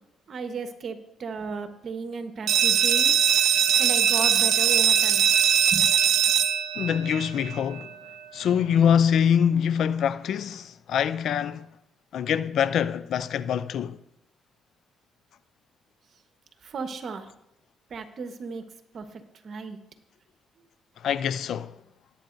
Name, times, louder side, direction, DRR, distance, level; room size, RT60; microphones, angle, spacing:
voice 1, 0.3-3.1 3.8-5.3 5.7-5.9 16.6-17.3 17.9-18.6 18.9-19.8, right 4 dB, 55° right, 1.2 m, -35 dB
sound 1, 2.5-7.9, right 9 dB, 80° right, 0.6 m, -21 dB
voice 2, 6.8-8.0 8.3-11.7 12.1-14.0 21.0-21.7, left 8 dB, 70° left, 0.4 m, -24 dB
18.5 x 8.9 x 2.6 m
cardioid pair, 90°, 0 cm